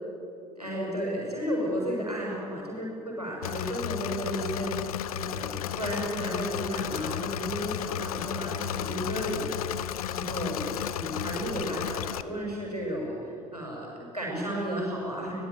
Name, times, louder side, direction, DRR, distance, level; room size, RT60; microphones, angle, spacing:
voice 1, 0.5-15.4, equal, 90° right, -3 dB, 6.4 m, -33 dB
Engine / Mechanisms, 3.4-12.2, left 11 dB, 70° left, 0.8 m, -33 dB
23.0 x 19.0 x 9.1 m, 2.6 s
figure-of-eight pair, 65°, 19 cm